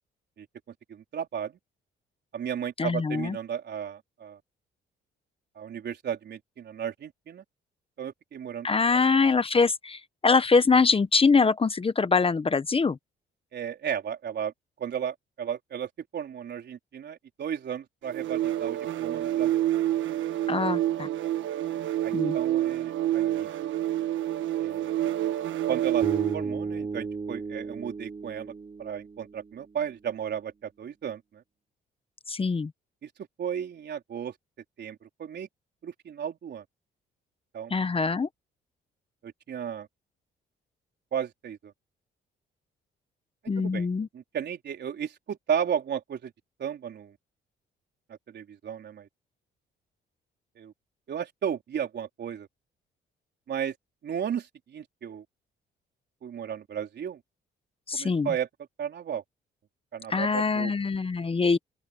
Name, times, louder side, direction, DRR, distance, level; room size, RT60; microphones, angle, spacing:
voice 1, 0.9-1.6 2.3-4.4 5.6-7.4 8.0-8.7 13.5-14.5 14.8-19.5 22.0-23.5 24.6-24.9 25.7-26.1 26.3-28.5 28.8-31.4 33.0-33.1 33.4-34.3 34.8-35.5 35.8-36.6 37.5-37.7 39.2-39.9 41.1-41.7 43.6-43.9 44.1-46.3 46.6-47.1 48.3-49.1 50.6-50.7 51.1-52.5 53.5-53.7 54.0-55.2 56.2-57.2 57.9-58.5 58.8-59.2 59.9-60.7, right 8 dB, 60° right, 3.7 m, -34 dB
voice 2, 2.8-3.4 8.6-13.0 20.5-21.1 22.1-22.4 32.3-32.7 37.7-38.3 43.5-44.1 57.9-58.3 60.1-61.6, left 4 dB, 30° left, 1.0 m, -23 dB
sound 1, 18.1-26.5, right 13 dB, 75° right, 1.2 m, -28 dB
Bass guitar, 26.0-30.1, right 4 dB, 25° right, 3.8 m, -35 dB
open air
cardioid pair, 90°, 20 cm